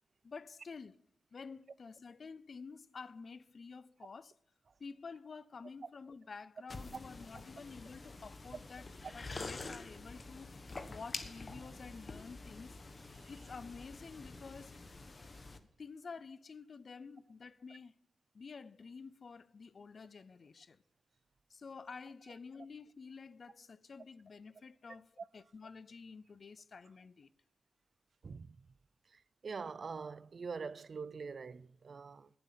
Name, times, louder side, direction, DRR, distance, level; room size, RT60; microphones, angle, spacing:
voice 1, 0.2-1.0 1.3-4.3 4.8-10.5 10.9-12.8 13.3-14.8 15.8-17.9 18.3-20.8 21.5-27.3, left 5 dB, 55° left, 0.6 m, -50 dB
sound 1, 6.7-15.6, left 3 dB, 35° left, 1.3 m, -47 dB
voice 2, 29.4-32.3, right 5 dB, 55° right, 0.5 m, -43 dB
20.0 x 7.8 x 5.7 m
wide cardioid pair, 120°, 0 cm